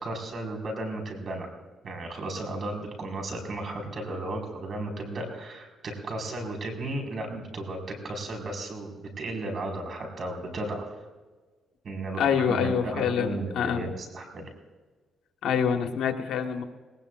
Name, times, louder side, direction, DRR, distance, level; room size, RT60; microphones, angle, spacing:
voice 1, 0.0-1.5 1.8-7.8 8.0-11.0 11.8-14.5, right 2 dB, 50° right, 2 dB, 4.9 m, -34 dB
voice 2, 12.2-13.9 15.4-16.6, left 7 dB, 80° left, 5 dB, 1.4 m, -26 dB
20.0 x 19.5 x 2.5 m, 1.3 s
cardioid pair, 90°, 0 cm